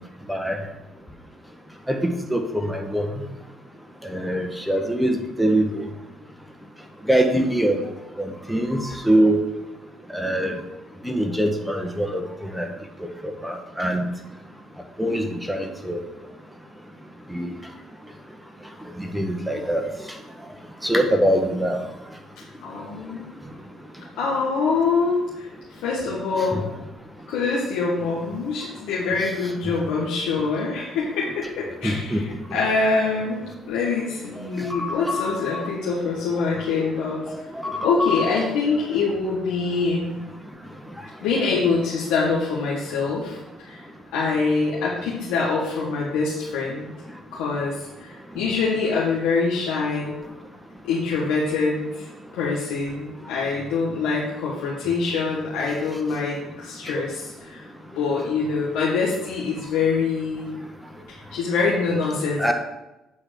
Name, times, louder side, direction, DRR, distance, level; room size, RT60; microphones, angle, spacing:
voice 1, 0.3-0.6 1.9-3.2 4.0-5.9 7.1-7.8 8.2-9.4 10.1-10.6 11.0-12.7 13.0-14.1 15.0-16.0 17.3-17.5 19.0-19.8 20.8-21.8 26.5-26.6 31.8-32.3 34.3-35.0 37.3-37.8 56.9-57.0 62.4-62.5, right 1 dB, ahead, 4 dB, 1.4 m, -23 dB
voice 2, 22.6-23.2 24.2-26.7 27.3-37.3 37.8-40.2 41.2-43.8 44.1-46.9 47.3-50.2 50.8-52.1 52.3-57.7 57.9-60.5 61.1-62.5, left 4 dB, 80° left, -5 dB, 1.6 m, -25 dB
8.8 x 4.0 x 6.5 m, 0.99 s
supercardioid pair, 65°, 0 cm